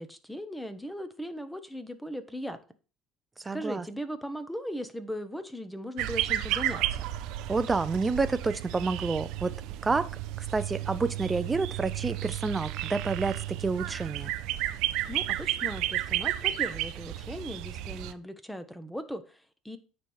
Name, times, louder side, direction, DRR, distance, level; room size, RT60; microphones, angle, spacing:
voice 1, 0.0-2.6 3.5-7.0 15.1-19.8, equal, 5° left, 0.9 m, -38 dB
voice 2, 3.4-3.9 7.5-9.5 9.8-10.1 10.4-14.3, right 4 dB, 20° right, 0.6 m, -29 dB
sound 1, 6.0-18.1, right 14 dB, 70° right, 0.5 m, -32 dB
8.9 x 3.3 x 4.3 m
supercardioid pair, 85°, 0 cm